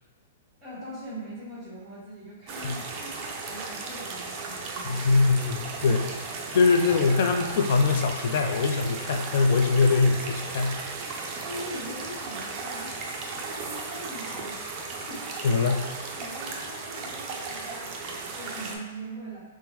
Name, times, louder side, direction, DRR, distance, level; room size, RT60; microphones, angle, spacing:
voice 1, 0.6-4.9 11.4-14.7 15.1-15.7 16.1-19.4, right 1 dB, 5° left, -11 dB, 1.3 m, -42 dB
sound 1, 2.5-18.8, right 3 dB, 30° right, 0.4 m, -36 dB
voice 2, 4.8-6.3 6.5-10.8 15.4-15.9, left 4 dB, 60° left, 3 dB, 0.4 m, -23 dB
3.4 x 2.1 x 2.9 m, 1.2 s
hypercardioid pair, 150°, 0 cm